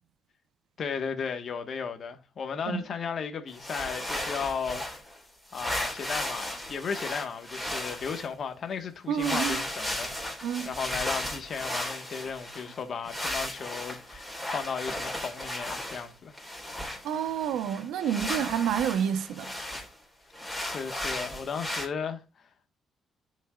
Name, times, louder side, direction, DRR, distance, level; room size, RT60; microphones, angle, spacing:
voice 1, 0.8-4.8 5.5-16.4 20.6-22.2, left 6 dB, 55° left, 1.3 m, -35 dB
sound 1, 3.5-5.2 5.5-8.3 9.2-12.8 13.0-16.1 16.3-19.9 20.3-21.9, left 1 dB, ahead, 3.8 m, -35 dB
voice 2, 9.1-9.6 10.4-10.7 17.0-19.5, right 9 dB, 85° right, 0.7 m, -29 dB
10.5 x 5.3 x 2.3 m
cardioid pair, 90°, 0 cm